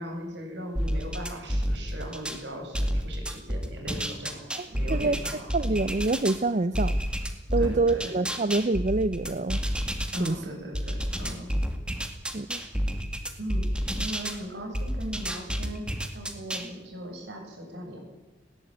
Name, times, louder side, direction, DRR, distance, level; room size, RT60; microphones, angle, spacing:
voice 1, 0.0-5.4 7.6-8.1 10.1-11.5 13.4-13.6 14.0-18.0, equal, 65° right, 2 dB, 7.7 m, -38 dB
sound 1, 0.8-2.4 2.7-6.4 6.7-10.3 10.7-14.4 14.7-16.7, equal, 5° right, 2.2 m, -30 dB
voice 2, 4.5-5.2 5.5-7.0 7.5-9.6 10.2-10.4 12.3-12.6, right 3 dB, 40° right, 14 dB, 0.6 m, -26 dB
19.5 x 18.0 x 9.1 m, 1.2 s
head